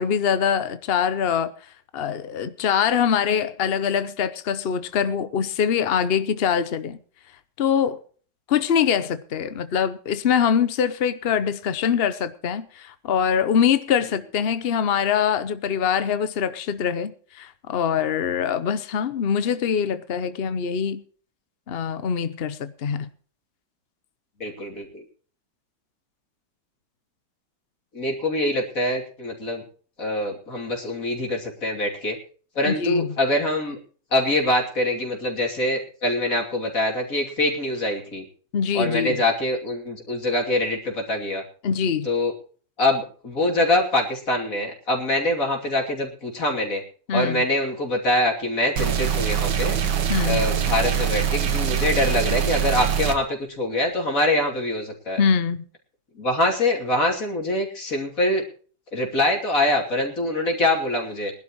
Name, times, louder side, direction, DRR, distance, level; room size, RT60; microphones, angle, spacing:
voice 1, 0.0-1.5 1.9-7.0 7.6-8.0 8.5-21.0 21.7-23.1 32.6-33.1 38.5-39.2 41.6-42.1 47.1-47.5 50.1-50.4 55.2-55.6, left 7 dB, 70° left, 0.5 m, -23 dB
voice 2, 24.4-25.0 27.9-29.6 30.0-32.2 32.5-33.8 34.1-38.2 38.7-41.4 42.0-42.3 42.8-46.8 47.1-49.8 50.3-55.2 56.2-58.4 58.9-61.3, left 1 dB, 45° left, 3.4 m, -24 dB
sound 1, 48.8-53.2, right 8 dB, 65° right, 1.9 m, -23 dB
21.5 x 11.5 x 3.0 m
omnidirectional pair, 2.1 m